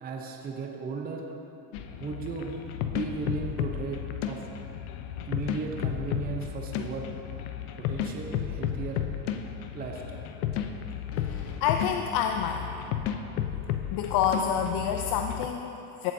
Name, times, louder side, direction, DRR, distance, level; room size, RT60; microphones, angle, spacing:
voice 1, 0.0-1.3 2.0-4.5 5.2-7.1 7.8-9.1 9.7-10.3, right 4 dB, 20° right, 2 dB, 0.6 m, -36 dB
sound 1, 1.7-15.5, left 9 dB, 90° left, 0.7 m, -33 dB
sound 2, 8.8-8.9 11.1-11.6, left 6 dB, 35° left, 0.8 m, -44 dB
voice 2, 11.2-12.7 13.9-16.1, left 8 dB, 55° left, 5 dB, 0.5 m, -28 dB
15.5 x 6.9 x 2.7 m, 2.9 s
supercardioid pair, 125°, 44 cm